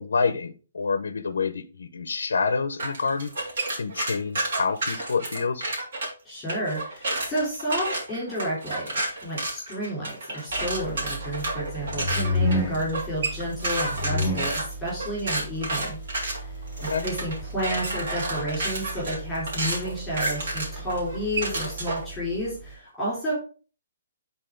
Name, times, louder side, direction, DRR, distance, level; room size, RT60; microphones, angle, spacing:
voice 1, 0.0-3.3 3.8-5.6 16.9-17.0, left 5 dB, 80° left, 10 dB, 0.8 m, -27 dB
sound 1, 2.8-6.1 6.5-22.1, right 2 dB, 50° right, 3.0 m, -30 dB
voice 2, 6.2-8.9 9.2-16.0 16.4-16.5 16.8-23.3, equal, 5° left, -7 dB, 3.5 m, -31 dB
sound 2, 10.5-22.7, left 1 dB, 15° right, 2.3 m, -33 dB
10.0 x 4.1 x 3.8 m, 0.37 s
hypercardioid pair, 175°, 0 cm